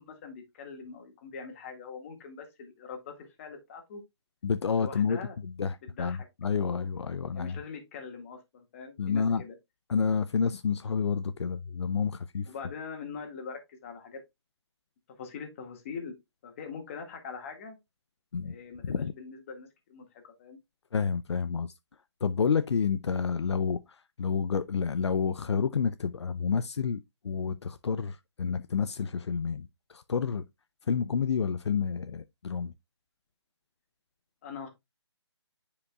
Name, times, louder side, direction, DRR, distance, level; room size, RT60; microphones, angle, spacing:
voice 1, 0.0-4.0 4.7-5.4 5.8-6.3 6.6-6.9 7.3-9.6 12.5-14.2 15.2-16.2 16.4-17.8 18.4-20.6 34.4-34.7, left 5 dB, 30° left, 1.7 m, -43 dB
voice 2, 4.4-7.6 9.0-9.4 9.9-12.5 18.3-18.5 18.8-19.1 20.9-21.7 22.2-23.8 24.2-30.4 30.9-32.7, left 6 dB, 70° left, 0.5 m, -29 dB
9.8 x 5.1 x 2.3 m
hypercardioid pair, 160°, 15 cm